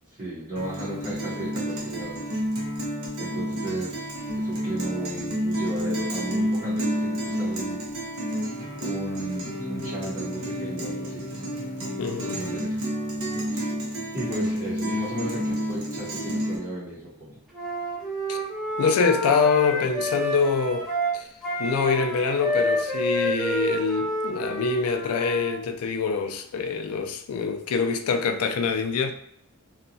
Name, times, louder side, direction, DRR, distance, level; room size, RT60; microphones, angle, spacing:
voice 1, 0.1-2.3 3.2-8.1 8.8-11.3 12.3-12.8 13.2-13.3 13.9-17.4, right 1 dB, 35° right, 0.8 m, -35 dB
Guitar, 0.6-16.6, equal, 75° right, 0.8 m, -30 dB
voice 2, 12.0-12.4 18.3-18.4 18.8-20.8 21.1-21.3 21.6-29.1, left 5 dB, 75° left, 0.3 m, -25 dB
Wind instrument woodwind instrument, 17.5-25.5, equal, ahead, 0.5 m, -29 dB
2.8 x 2.2 x 2.6 m
head